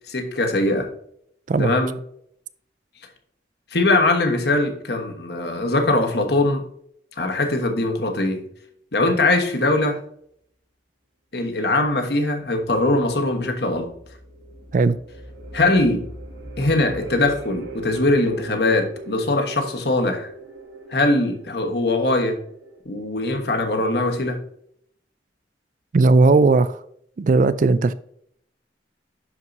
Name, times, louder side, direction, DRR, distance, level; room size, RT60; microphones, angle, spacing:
voice 1, 0.1-0.9 1.6-1.9 3.7-6.6 7.2-8.4 8.9-10.0 11.3-13.9 15.5-16.0 16.6-20.3 20.9-22.4 22.8-24.4, left 2 dB, 60° left, 1.3 m, -21 dB
sound 1, 13.7-22.8, right 3 dB, 80° right, 2.0 m, -40 dB
voice 2, 25.9-26.8 27.2-27.9, right 3 dB, 45° right, 0.3 m, -17 dB
11.0 x 4.6 x 2.7 m
head